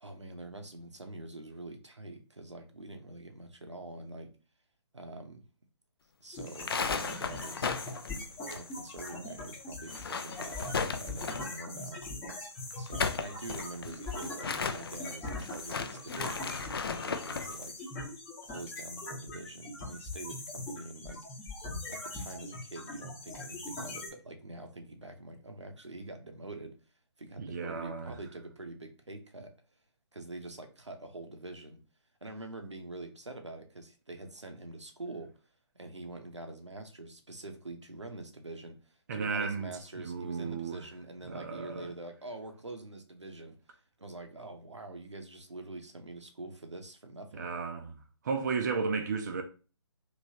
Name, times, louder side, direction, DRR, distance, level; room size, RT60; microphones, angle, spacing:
voice 1, 0.0-4.3 4.9-5.4 6.2-7.8 8.5-12.0 12.8-17.8 18.4-21.2 21.9-26.7 27.2-29.5 30.1-31.8 32.2-35.3 35.7-38.7 39.1-43.6 44.0-47.5, right 2 dB, 85° right, 0.8 m, -45 dB
sound 1, 6.3-24.1, left 2 dB, 15° left, 0.9 m, -41 dB
sound 2, 6.5-9.1 9.3-9.4 9.8-11.6 12.7-17.5, left 5 dB, 55° left, 0.4 m, -35 dB
voice 2, 27.4-28.1 39.1-40.8 41.2-41.9 47.3-48.0 48.2-49.4, right 5 dB, 40° right, 0.5 m, -34 dB
3.2 x 3.0 x 2.7 m
figure-of-eight pair, 140°, 15 cm